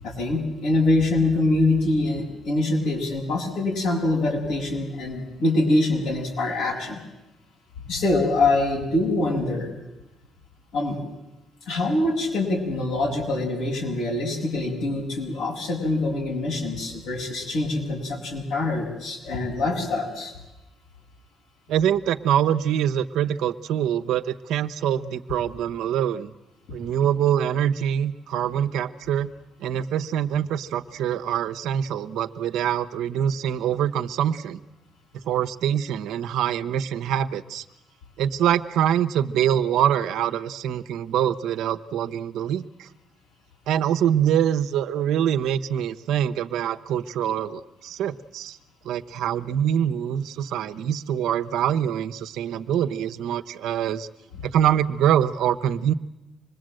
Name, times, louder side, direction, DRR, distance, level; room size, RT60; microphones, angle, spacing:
voice 1, 0.0-7.0 7.9-9.7 10.7-11.0 11.7-20.3, left 2 dB, 85° left, -1 dB, 6.8 m, -24 dB
voice 2, 21.7-26.3 26.7-29.3 29.6-34.6 35.2-37.6 38.2-42.9 43.7-48.6 48.8-54.1 54.4-55.9, right 10 dB, 85° right, 10 dB, 0.9 m, -24 dB
26.0 x 20.5 x 7.8 m, 0.94 s
cardioid pair, 90°, 0 cm